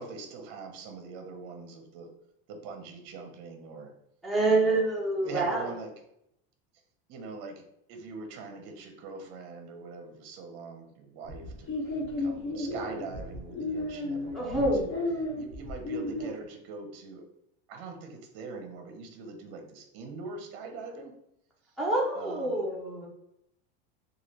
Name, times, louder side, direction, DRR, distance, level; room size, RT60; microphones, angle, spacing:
voice 1, 0.0-2.1 2.5-3.9 4.4-4.8 5.2-5.9 7.1-7.6 7.9-11.7 12.2-15.0 15.4-17.2 17.7-21.1 22.1-22.6, right 4 dB, 40° right, 4 dB, 0.6 m, -42 dB
voice 2, 4.2-5.7 14.3-14.8 21.8-23.1, right 2 dB, ahead, -4 dB, 0.3 m, -26 dB
sound 1, 11.3-16.3, left 2 dB, 55° left, 1.2 m, -33 dB
3.4 x 2.3 x 2.9 m, 0.77 s
supercardioid pair, 170°, 29 cm